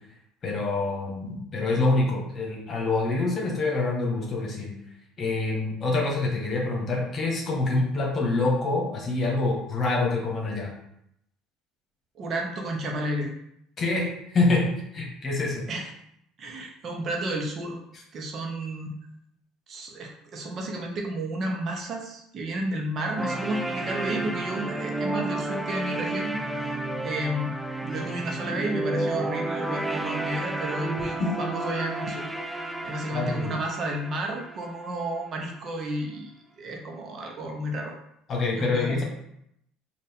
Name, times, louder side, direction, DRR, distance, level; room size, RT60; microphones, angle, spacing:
voice 1, 0.4-4.7 5.2-10.7 13.8-14.7 14.9-15.6 33.1-33.5 38.3-39.0, left 3 dB, 40° left, -1 dB, 1.4 m, -26 dB
voice 2, 12.2-13.3 15.7-15.9 16.4-17.8 18.1-18.9 19.7-26.7 27.0-32.2 32.8-37.9 38.6-39.0, right 1 dB, 45° right, 1 dB, 0.8 m, -32 dB
sound 1, 23.2-35.2, right 2 dB, 5° right, 0.4 m, -31 dB
4.3 x 2.5 x 3.5 m, 0.76 s
supercardioid pair, 85°, 0 cm